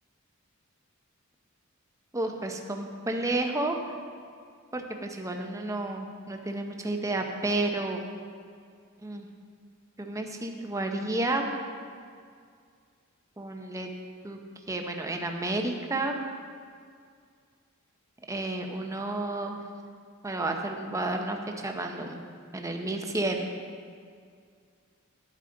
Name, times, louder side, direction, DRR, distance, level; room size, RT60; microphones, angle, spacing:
voice 1, 2.1-3.8 4.7-8.0 9.0-9.3 10.0-11.5 13.4-13.9 14.2-14.4 14.7-16.2 18.3-19.6 20.2-21.4 21.6-22.2 22.5-23.5, right 2 dB, 15° right, 3 dB, 0.7 m, -31 dB
11.0 x 8.7 x 3.9 m, 2.2 s
head